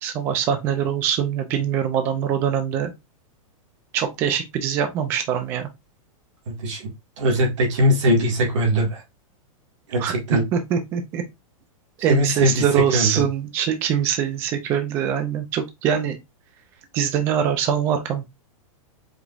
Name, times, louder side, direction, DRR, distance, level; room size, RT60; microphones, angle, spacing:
voice 1, 0.0-2.9 3.9-5.7 10.0-11.2 12.0-16.2 16.9-18.3, right 8 dB, 10° right, 0.3 m, -23 dB
voice 2, 7.2-9.0 9.9-10.4 12.1-13.1, equal, 55° right, 1.9 m, -20 dB
4.9 x 3.5 x 2.5 m
supercardioid pair, 175°, 18 cm